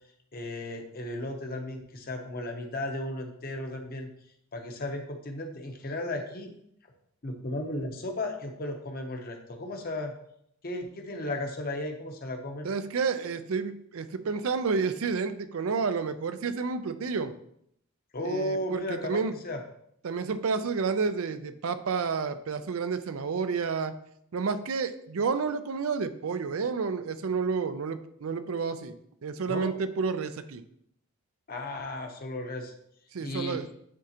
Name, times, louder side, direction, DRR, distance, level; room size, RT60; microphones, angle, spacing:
voice 1, 0.3-4.1 4.5-6.5 7.2-10.1 10.6-12.7 18.1-19.6 29.5-29.8 31.5-32.7 33.2-33.6, left 1 dB, 45° left, 3 dB, 0.9 m, -35 dB
voice 2, 12.6-17.3 18.2-19.3 20.0-23.9 24.3-28.9 29.2-30.6 33.1-33.7, right 5 dB, 70° right, 11 dB, 0.5 m, -30 dB
9.9 x 3.7 x 2.9 m, 0.72 s
head